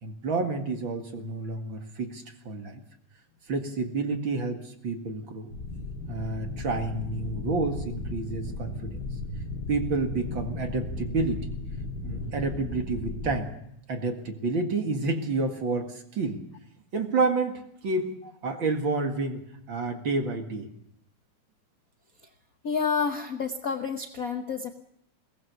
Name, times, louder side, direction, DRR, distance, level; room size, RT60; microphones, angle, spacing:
voice 1, 0.0-2.8 3.5-5.5 6.1-9.1 9.7-11.5 12.0-13.6 13.9-16.4 16.9-18.2 18.4-20.7, right 3 dB, 45° right, 5 dB, 2.5 m, -29 dB
sound 1, 5.5-13.4, left 2 dB, 40° left, 1.9 m, -35 dB
voice 2, 22.6-24.7, left 5 dB, 80° left, 5 dB, 0.7 m, -29 dB
22.5 x 18.0 x 7.0 m, 0.75 s
omnidirectional pair, 3.3 m